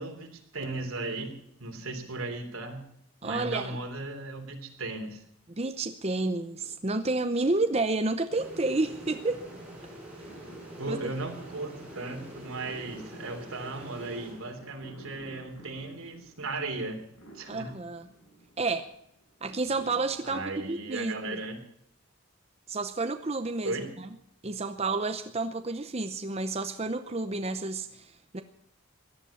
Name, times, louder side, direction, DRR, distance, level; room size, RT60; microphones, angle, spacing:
voice 1, 0.0-2.8 3.2-5.2 10.8-17.0 17.3-17.7 20.2-21.6 23.6-23.9, right 2 dB, 85° right, 4 dB, 3.3 m, -36 dB
voice 2, 3.2-3.8 5.5-9.4 10.9-11.1 17.5-18.1 18.6-18.9 19.4-21.4 22.7-24.1 24.4-28.4, right 3 dB, 30° right, 8 dB, 0.7 m, -30 dB
sound 1, 6.6-20.3, right 1 dB, 75° left, 7.9 m, -54 dB
sound 2, 8.3-15.0, right 1 dB, 5° right, 6.4 m, -46 dB
17.0 x 11.0 x 7.2 m, 0.72 s
head